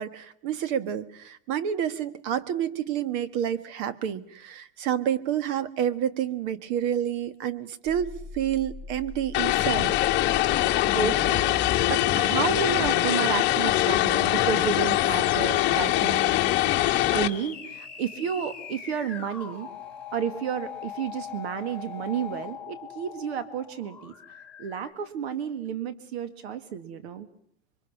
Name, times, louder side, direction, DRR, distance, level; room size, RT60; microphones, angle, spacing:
voice 1, 0.0-9.9, right 9 dB, 50° right, 15 dB, 1.5 m, -29 dB
sound 1, 7.8-24.9, left 6 dB, 5° left, 2.6 m, -41 dB
Vehicle, 9.3-17.3, left 15 dB, 35° left, 1.5 m, -23 dB
voice 2, 10.9-16.5 17.1-19.7 20.1-24.1 24.6-27.3, right 7 dB, 85° right, 12 dB, 2.1 m, -31 dB
27.5 x 24.0 x 5.9 m, 0.64 s
supercardioid pair, 160°, 31 cm